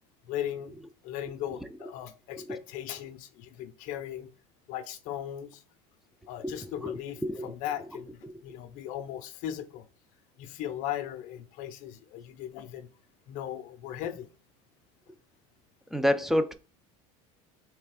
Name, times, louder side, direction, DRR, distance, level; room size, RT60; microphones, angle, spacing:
voice 1, 0.3-0.7 1.0-4.3 4.7-5.6 6.3-9.9 10.4-12.9 13.3-14.3, left 11 dB, 60° left, 0.5 m, -37 dB
voice 2, 6.4-6.9 7.2-7.5 8.2-8.3 15.9-16.5, equal, ahead, 0.3 m, -28 dB
3.3 x 3.2 x 4.7 m
cardioid pair, 135°, 15 cm